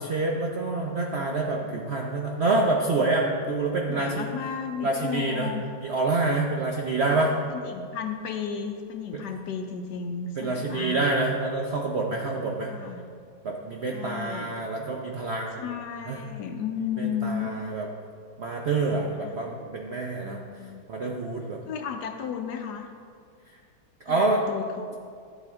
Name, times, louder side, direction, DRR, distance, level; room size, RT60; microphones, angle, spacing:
voice 1, 0.0-4.3 4.8-5.5 5.8-7.4 9.1-9.2 10.4-12.7 13.4-15.7 16.1-16.2 17.0-17.9 18.4-20.4 20.9-21.6 24.1-24.4, right 3 dB, 90° right, 0 dB, 0.5 m, -27 dB
voice 2, 3.9-5.6 6.9-11.0 12.7-13.1 13.9-14.5 15.6-17.5 19.2-19.5 20.2-20.8 21.7-22.9 24.1-24.9, left 7 dB, 70° left, 5 dB, 1.1 m, -34 dB
11.5 x 8.1 x 3.5 m, 2.2 s
omnidirectional pair, 2.1 m